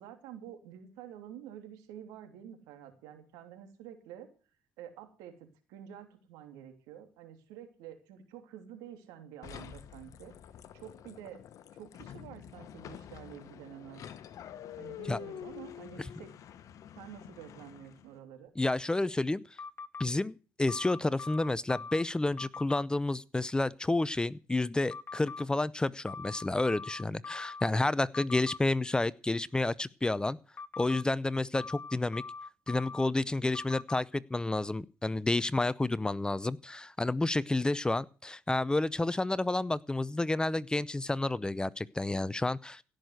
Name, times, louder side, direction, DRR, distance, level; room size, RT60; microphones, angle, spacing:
voice 1, 0.0-4.3 4.8-10.3 10.7-11.4 11.7-14.0 14.8-16.3 16.9-18.5, right 10 dB, 90° right, 6 dB, 2.9 m, -49 dB
sound 1, 9.4-18.2, left 10 dB, 65° left, 1.2 m, -47 dB
voice 2, 18.6-19.4 20.0-30.4 30.8-32.2 32.7-42.8, left 2 dB, 15° left, 20 dB, 0.6 m, -30 dB
sound 2, 19.6-20.1 20.7-22.0 22.4-22.8 24.9-25.4 26.1-27.7 28.1-28.6 30.6-31.0 31.5-33.1 33.5-34.0, left 4 dB, 35° left, 0.9 m, -42 dB
17.0 x 6.4 x 8.1 m, 0.37 s
supercardioid pair, 80°, 6 cm